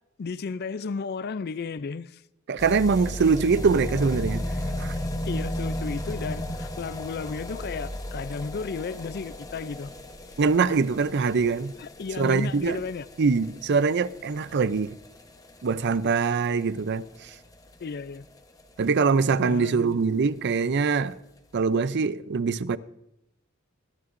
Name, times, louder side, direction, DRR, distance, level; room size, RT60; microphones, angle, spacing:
voice 1, 0.2-2.2 5.3-9.9 11.8-13.1 17.8-18.3 19.4-20.0, left 5 dB, 50° left, 0.4 m, -34 dB
voice 2, 2.5-4.5 4.8-4.9 10.4-11.8 12.2-12.8 13.2-15.0 15.6-17.3 18.8-21.2 21.5-22.8, right 5 dB, 55° right, 0.5 m, -23 dB
sound 1, 2.6-19.4 19.6-19.7 19.9-20.0 20.2-20.3 20.6-20.7 21.4-21.5, left 1 dB, 15° left, 1.0 m, -36 dB
20.5 x 12.5 x 2.6 m
head